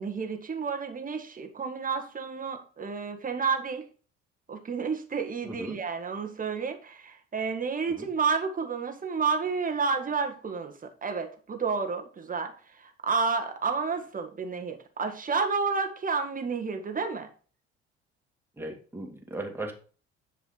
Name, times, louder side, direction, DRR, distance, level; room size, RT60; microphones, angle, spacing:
voice 1, 0.0-3.9 4.5-12.5 12.8-17.3, right 5 dB, 25° right, 5 dB, 1.7 m, -30 dB
voice 2, 5.4-5.8 8.0-8.1 18.6-19.7, right 1 dB, 5° right, 2 dB, 2.4 m, -37 dB
10.0 x 5.1 x 3.9 m, 0.39 s
figure-of-eight pair, 55°, 34 cm